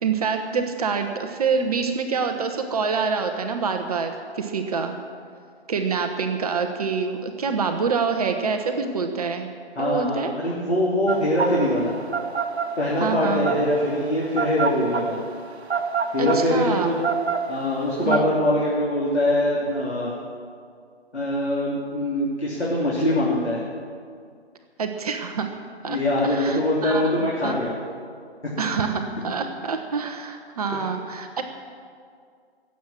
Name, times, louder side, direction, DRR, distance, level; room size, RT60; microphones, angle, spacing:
voice 1, 0.0-5.0 5.7-9.5 9.8-10.3 13.0-13.5 16.2-16.9 18.0-18.2 24.8-25.5 25.8-27.0 27.4-27.5 28.6-31.4, right 5 dB, 35° right, 6 dB, 0.9 m, -26 dB
voice 2, 9.8-12.0 12.8-15.2 16.1-17.0 17.5-20.1 21.1-23.6 25.9-27.7 30.7-30.8, left 1 dB, 85° left, -6 dB, 3.2 m, -23 dB
sound 1, 11.1-18.2, right 6 dB, 75° right, 1.1 m, -26 dB
16.5 x 7.5 x 7.5 m, 2.1 s
figure-of-eight pair, 140°, 33 cm